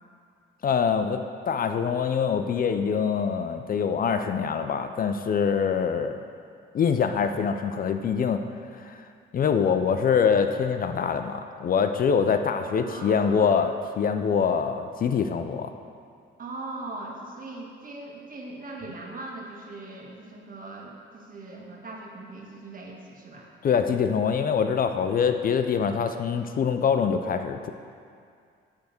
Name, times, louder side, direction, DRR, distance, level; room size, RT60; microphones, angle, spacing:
voice 1, 0.6-6.2 6.7-8.4 8.7-9.0 9.3-15.7 23.6-27.7, left 6 dB, 45° left, 7 dB, 0.5 m, -24 dB
voice 2, 12.6-13.5 16.4-23.5, right 2 dB, 45° right, -1 dB, 1.5 m, -40 dB
10.5 x 3.5 x 6.6 m, 2.3 s
cardioid pair, 90°, 20 cm